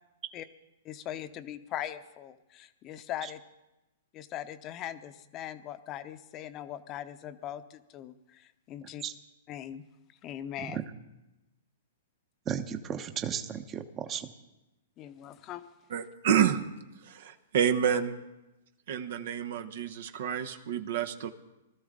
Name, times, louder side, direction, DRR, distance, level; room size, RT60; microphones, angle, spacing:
voice 1, 0.8-3.4 4.1-9.0 9.5-9.8 10.2-10.8 15.0-15.6, left 11 dB, 30° left, 11 dB, 0.8 m, -40 dB
voice 2, 8.8-9.1 10.6-10.8 12.4-14.3, right 8 dB, 25° right, 8 dB, 0.9 m, -35 dB
voice 3, 15.9-16.6 17.1-18.2 18.9-21.3, right 8 dB, 65° right, 8 dB, 0.9 m, -28 dB
20.0 x 13.5 x 3.7 m, 1.0 s
hypercardioid pair, 125°, 0 cm